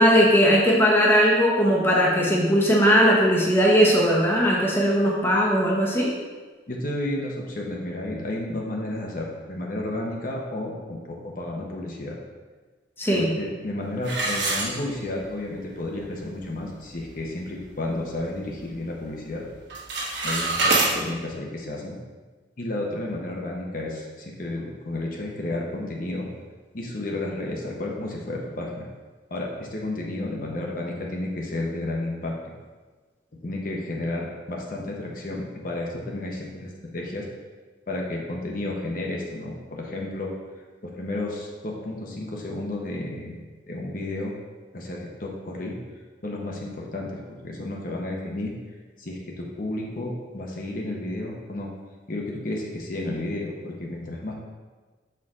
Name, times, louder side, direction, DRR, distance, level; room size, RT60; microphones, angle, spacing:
voice 1, 0.0-6.1 13.0-13.3, equal, 10° left, -4 dB, 0.9 m, -19 dB
voice 2, 6.7-12.2 13.1-19.4 20.2-22.0 22.6-26.3 26.7-28.9 29.3-32.3 33.3-37.2 37.9-40.3 40.8-43.4 43.7-44.3 44.7-45.8 46.2-48.6 49.0-51.7 52.1-54.4, left 1 dB, 50° left, -1 dB, 0.8 m, -32 dB
sound 1, 14.0-15.3 15.8-15.9 16.4-16.5 16.9-17.2 17.7-18.8 19.0-19.4 19.6-20.9, right 2 dB, 70° right, 1.2 m, -26 dB
6.2 x 4.6 x 3.6 m, 1.3 s
head